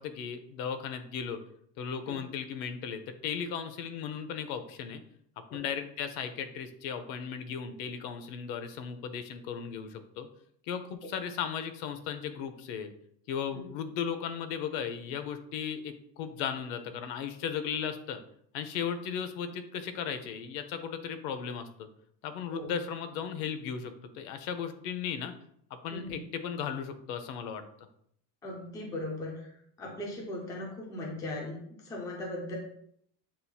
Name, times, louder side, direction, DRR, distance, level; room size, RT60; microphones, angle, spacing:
voice 1, 0.0-1.4 1.8-5.0 5.5-10.3 10.7-12.9 13.3-18.2 18.5-21.9 22.2-25.3 25.8-27.6, left 7 dB, 75° left, 9 dB, 0.7 m, -36 dB
voice 2, 28.4-29.5 29.8-32.5, left 1 dB, 10° left, -2 dB, 0.4 m, -38 dB
7.5 x 2.7 x 2.2 m, 0.70 s
cardioid pair, 175°, 43 cm